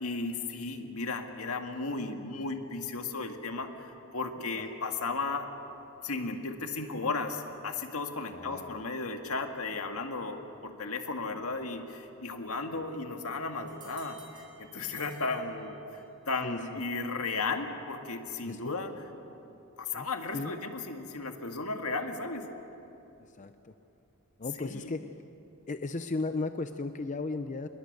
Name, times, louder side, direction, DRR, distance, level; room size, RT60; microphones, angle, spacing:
voice 1, 0.0-5.5 6.0-18.9 19.8-22.5 24.6-24.9, left 3 dB, 75° left, 5 dB, 1.9 m, -35 dB
voice 2, 8.3-8.8 12.7-12.8 16.4-16.8 18.5-18.7 19.9-20.1 20.3-20.5 23.4-23.7 24.4-25.1 25.7-27.7, left 3 dB, 35° left, 9 dB, 0.6 m, -35 dB
sound 1, 13.7-16.2, right 4 dB, 20° right, 4.6 m, -56 dB
27.0 x 22.0 x 6.6 m, 2.9 s
head